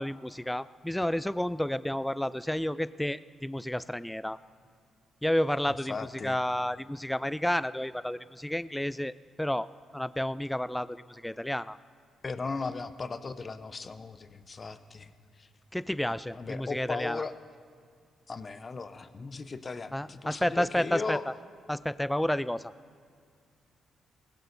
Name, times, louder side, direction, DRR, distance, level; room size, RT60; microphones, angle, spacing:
voice 1, 0.0-4.4 5.2-6.0 6.2-11.8 15.7-17.2 19.9-21.3 21.7-22.7, left 1 dB, 5° left, 16 dB, 0.3 m, -31 dB
voice 2, 5.9-6.4 12.2-15.1 15.4-15.5 16.3-17.4 18.3-21.2, left 4 dB, 35° left, 12 dB, 0.7 m, -37 dB
19.5 x 16.5 x 2.7 m, 2.1 s
supercardioid pair, 70°, 0 cm